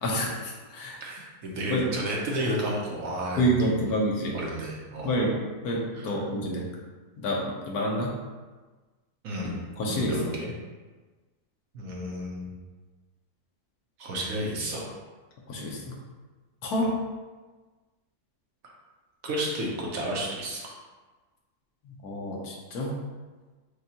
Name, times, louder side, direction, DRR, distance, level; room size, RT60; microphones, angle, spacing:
voice 1, 0.0-1.0 1.7-1.9 3.4-4.4 5.0-5.4 5.6-6.7 7.2-8.1 9.8-10.4 15.5-15.8 16.6-16.9 21.8-22.9, equal, 80° left, -2 dB, 1.3 m, -28 dB
voice 2, 1.0-3.8 4.3-5.2 5.9-6.2 9.2-10.5 11.7-12.5 14.0-14.9 16.8-16.9 18.6-18.7 19.2-20.7, right 1 dB, 65° right, -3 dB, 1.2 m, -32 dB
6.3 x 2.3 x 2.8 m, 1.3 s
omnidirectional pair, 1.6 m